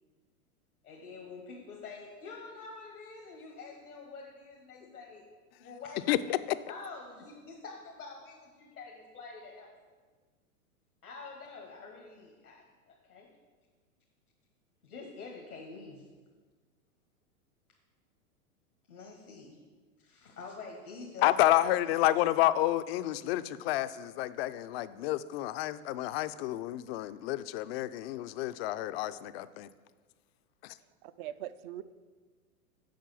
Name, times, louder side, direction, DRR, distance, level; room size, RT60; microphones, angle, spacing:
voice 1, 0.8-5.2 5.6-6.3 6.7-9.7 11.0-13.3 14.8-16.1 18.9-19.6 20.0-22.1, left 4 dB, 90° left, 0 dB, 1.5 m, -47 dB
voice 2, 6.1-6.4 21.2-29.7 30.6-30.7, left 14 dB, 45° left, 13 dB, 0.5 m, -29 dB
voice 3, 31.0-31.8, right 12 dB, 40° right, 14 dB, 0.4 m, -41 dB
7.7 x 5.4 x 6.9 m, 1.4 s
hypercardioid pair, 110°, 44 cm